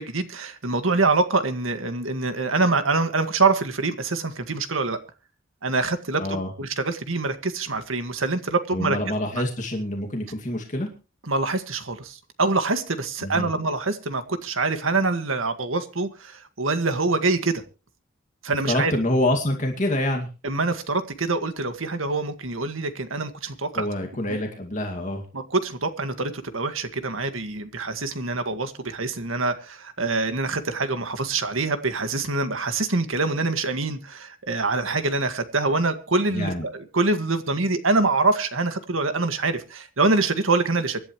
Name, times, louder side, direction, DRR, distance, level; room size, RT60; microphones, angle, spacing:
voice 1, 0.0-5.0 5.6-9.0 9.3-9.4 11.2-17.6 18.4-18.9 20.4-23.9 24.3-24.4 25.3-41.0, right 3 dB, 80° right, 9 dB, 1.9 m, -25 dB
voice 2, 6.2-6.5 8.7-10.9 13.2-13.5 18.7-20.3 23.7-25.2 36.3-36.6, left 1 dB, 40° left, 2 dB, 2.3 m, -26 dB
25.0 x 11.5 x 3.1 m, 0.34 s
head